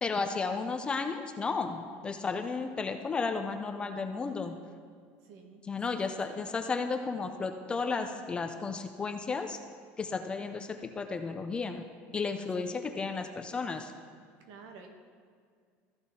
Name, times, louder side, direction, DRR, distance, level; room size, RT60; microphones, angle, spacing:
voice 1, 0.0-4.5 5.7-9.6 10.0-11.8 12.1-13.9, left 4 dB, 15° left, 6 dB, 0.5 m, -33 dB
voice 2, 5.2-5.6 5.9-6.4 12.6-12.8 14.5-14.9, right 5 dB, 60° right, 3 dB, 1.3 m, -50 dB
14.0 x 6.2 x 3.6 m, 2.1 s
cardioid pair, 150°, 6 cm